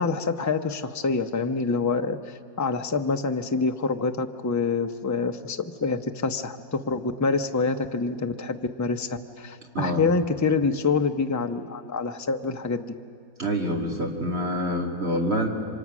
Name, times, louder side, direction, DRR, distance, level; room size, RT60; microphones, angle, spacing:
voice 1, 0.0-12.9, left 4 dB, 25° left, 6 dB, 0.3 m, -26 dB
voice 2, 9.7-10.1 13.4-15.5, equal, 40° right, 1 dB, 2.5 m, -26 dB
28.5 x 25.0 x 6.1 m, 2.4 s
omnidirectional pair, 1.7 m